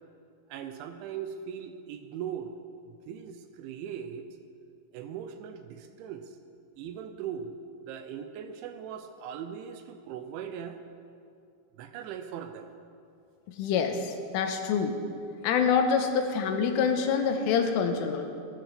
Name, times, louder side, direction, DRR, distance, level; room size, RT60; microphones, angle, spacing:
voice 1, 0.5-2.5 2.9-4.3 4.9-6.4 6.8-7.6 7.9-10.8 11.7-12.7, right 8 dB, 80° right, 8 dB, 2.9 m, -39 dB
voice 2, 13.5-15.0 15.4-18.3, left 6 dB, 80° left, 5 dB, 3.4 m, -26 dB
18.0 x 14.0 x 5.1 m, 2.5 s
omnidirectional pair, 5.9 m